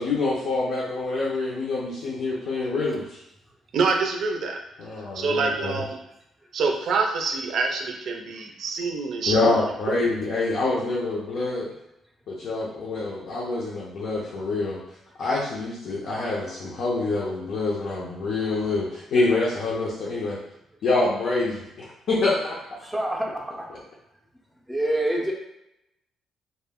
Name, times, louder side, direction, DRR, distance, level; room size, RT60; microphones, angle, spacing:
voice 1, 0.0-3.2 4.8-5.7 9.3-11.7 12.3-14.8 15.2-20.4 20.8-22.6, left 3 dB, 70° left, -6 dB, 0.6 m, -26 dB
voice 2, 3.7-4.6 5.1-6.0 6.5-9.6 9.9-10.1, right 4 dB, 65° right, 2 dB, 0.4 m, -26 dB
voice 3, 22.8-23.4 24.7-25.3, right 1 dB, 5° right, -2 dB, 0.5 m, -25 dB
2.1 x 2.1 x 3.5 m, 0.83 s
cardioid pair, 90°, 0 cm